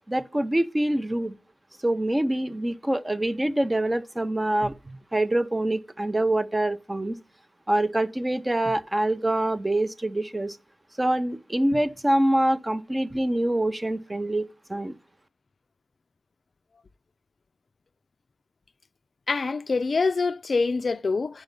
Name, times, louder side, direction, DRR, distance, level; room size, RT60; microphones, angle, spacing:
voice 1, 0.1-1.4 1.8-7.2 7.7-10.6 11.0-15.0, right 1 dB, 15° right, 0.5 m, -25 dB
voice 2, 19.3-21.4, left 4 dB, 50° left, 0.4 m, -25 dB
9.2 x 4.9 x 5.3 m
wide cardioid pair, 85°, 0 cm